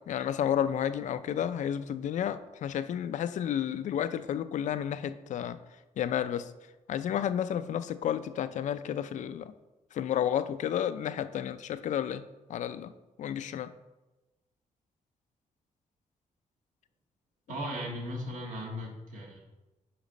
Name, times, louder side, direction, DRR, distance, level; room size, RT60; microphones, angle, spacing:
voice 1, 0.1-5.6 6.0-6.5 6.9-9.5 9.9-12.2 12.5-12.9 13.2-13.7, left 9 dB, 70° left, 12 dB, 0.4 m, -31 dB
voice 2, 17.5-19.4, equal, 75° right, -1 dB, 1.9 m, -37 dB
7.0 x 5.2 x 5.2 m, 1.1 s
wide cardioid pair, 160°, 13 cm